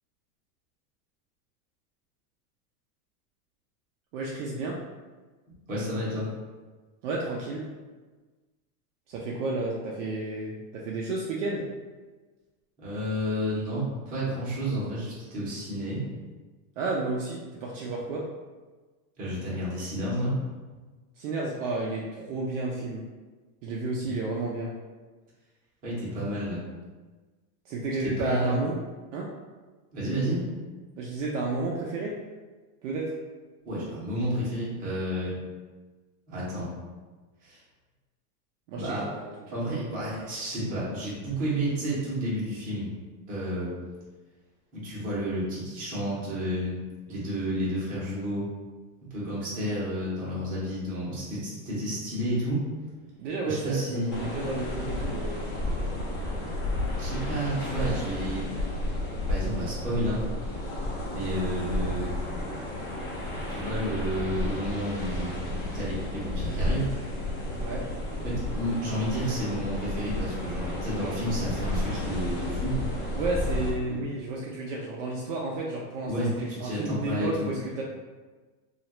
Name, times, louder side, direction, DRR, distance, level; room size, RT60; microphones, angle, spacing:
voice 1, 4.1-4.8 7.0-7.7 9.1-11.7 16.8-18.2 21.2-23.0 23.6-24.7 27.7-28.8 29.1-29.3 31.0-32.2 32.8-33.1 38.7-39.3 53.2-55.9 67.5-67.9 73.1-77.8, right 2 dB, 55° right, -3 dB, 0.5 m, -32 dB
voice 2, 5.7-6.3 12.8-16.0 19.2-20.4 24.1-24.2 25.8-26.6 28.0-28.6 29.9-30.4 33.6-35.3 36.3-36.7 37.4-37.6 38.7-39.1 39.5-42.9 43.3-43.7 44.7-46.8 47.1-48.4 49.1-52.6 53.5-54.1 57.0-58.5 59.3-60.2 61.1-62.1 63.5-65.3 65.6-66.9 68.2-72.8 73.9-74.0 76.1-77.5, equal, 20° right, -8 dB, 0.8 m, -31 dB
sound 1, 54.1-73.7, left 1 dB, 40° left, 0.9 m, -32 dB
3.0 x 2.4 x 2.9 m, 1.3 s
supercardioid pair, 165°, 47 cm